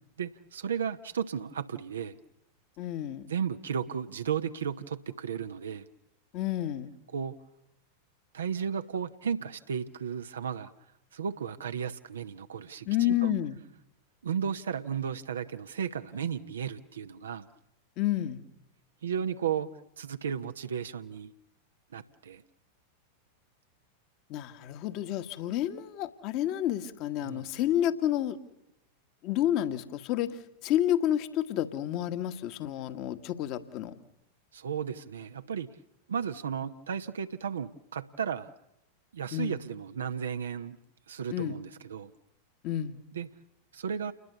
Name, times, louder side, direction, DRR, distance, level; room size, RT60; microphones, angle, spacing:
voice 1, 0.2-2.2 3.3-5.9 7.1-7.4 8.3-10.7 11.1-13.3 14.2-17.5 19.0-19.7 20.0-21.3 21.9-22.4 27.2-27.5 34.5-35.7 36.1-38.5 39.1-40.8 41.1-42.1 43.1-43.3 43.7-44.1, right 7 dB, 65° right, 8 dB, 1.0 m, -34 dB
voice 2, 2.8-3.3 6.3-6.9 12.9-13.6 18.0-18.4 24.3-28.4 29.2-33.9 39.3-39.6 41.3-41.6 42.6-43.0, left 12 dB, 40° left, 11 dB, 1.6 m, -30 dB
29.0 x 21.0 x 6.9 m, 0.83 s
figure-of-eight pair, 90°, 0 cm